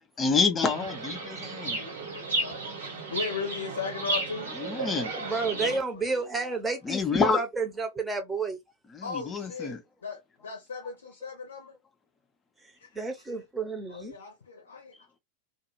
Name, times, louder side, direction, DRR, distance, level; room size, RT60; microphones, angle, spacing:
voice 1, 0.2-1.8 4.5-5.1 6.8-7.4 8.9-9.8, left 4 dB, 20° left, 0.6 m, -27 dB
Chirp tweet, 0.6-5.8, right 2 dB, 70° right, 1.4 m, -33 dB
voice 2, 1.4-4.5 5.5-6.6 9.0-11.7 12.8-12.9 13.9-14.9, left 5 dB, 70° left, 0.7 m, -38 dB
voice 3, 5.1-8.6 12.9-14.1, right 4 dB, 10° right, 0.8 m, -31 dB
2.5 x 2.3 x 3.0 m
figure-of-eight pair, 90°, 0 cm